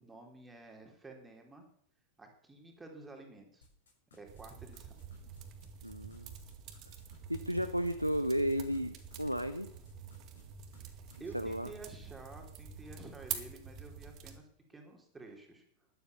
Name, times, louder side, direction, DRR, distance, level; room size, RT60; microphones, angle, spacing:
voice 1, 0.0-1.7 2.2-3.7 4.1-5.0 10.7-15.6, right 3 dB, 10° right, 2 dB, 3.7 m, -51 dB
sound 1, 3.6-9.4 9.7-10.4 10.7-10.8 11.1-11.6, left 2 dB, 65° left, 6.5 m, -61 dB
sound 2, 4.2-14.4, right 8 dB, 35° right, 2.1 m, -47 dB
voice 2, 5.8-6.3 6.9-7.0 7.3-9.7 11.3-11.7, equal, 90° right, 10 dB, 0.8 m, -33 dB
12.5 x 11.5 x 7.1 m, 0.66 s
figure-of-eight pair, 90°, 0 cm